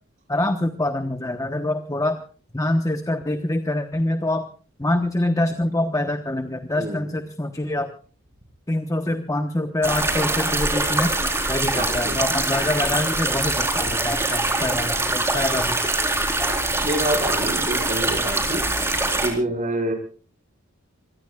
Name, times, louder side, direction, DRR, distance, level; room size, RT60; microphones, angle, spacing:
voice 1, 0.3-2.2 2.5-4.5 4.8-7.9 8.7-11.1 11.5-15.8, left 1 dB, 15° left, 7 dB, 1.1 m, -25 dB
voice 2, 6.7-7.1 11.7-12.2 14.5-14.7 16.8-18.6 19.2-19.9, right 1 dB, 35° right, 5 dB, 5.1 m, -27 dB
sound 1, 9.8-19.3, right 2 dB, 10° right, 4.1 m, -23 dB
26.5 x 22.5 x 2.4 m, 0.39 s
head